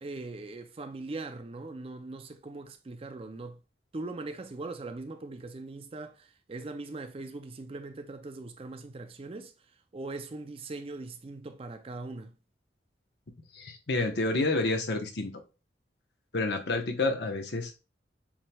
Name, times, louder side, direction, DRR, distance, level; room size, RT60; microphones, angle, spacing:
voice 1, 0.0-3.6 3.9-9.5 9.9-12.3, right 2 dB, 30° right, 0.4 m, -40 dB
voice 2, 13.5-15.3 16.3-17.7, left 2 dB, 65° left, 0.9 m, -29 dB
7.2 x 3.2 x 2.2 m
head